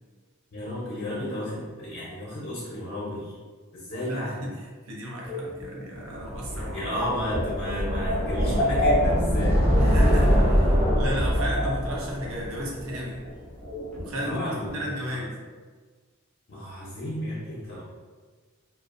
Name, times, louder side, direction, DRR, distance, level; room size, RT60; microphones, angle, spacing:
voice 1, 0.5-3.3 3.7-4.4 6.5-9.6 14.2-15.2 16.5-17.8, left 1 dB, 50° left, -7 dB, 0.6 m, -33 dB
voice 2, 4.0-6.9 9.8-13.2 14.0-15.3, equal, 70° right, -2 dB, 0.6 m, -34 dB
sound 1, 5.2-12.6 12.9-13.0 13.2-13.3 13.6-14.7, left 1 dB, 5° left, 0.6 m, -31 dB
sound 2, 6.3-13.3, equal, 45° right, 0.8 m, -24 dB
2.5 x 2.0 x 2.4 m, 1.5 s
head